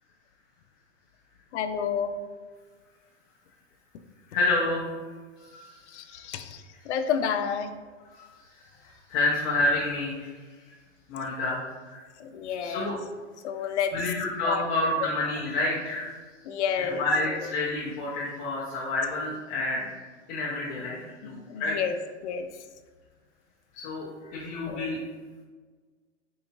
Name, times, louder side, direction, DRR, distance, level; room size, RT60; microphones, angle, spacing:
voice 1, 1.5-2.1 5.9-7.7 12.2-13.0 13.4-14.0 14.4-14.6 16.4-17.5 21.2-22.0 22.2-22.6 24.7-25.0, left 7 dB, 70° left, 8 dB, 0.5 m, -30 dB
voice 2, 4.3-4.9 5.4-6.2 8.1-8.3 8.5-10.3 11.1-12.0 12.6-13.0 13.9-16.2 16.8-19.9 20.3-21.8 23.7-25.0, left 2 dB, 25° left, -6 dB, 0.5 m, -29 dB
4.4 x 2.7 x 2.8 m, 1.5 s
hypercardioid pair, 145°, 35 cm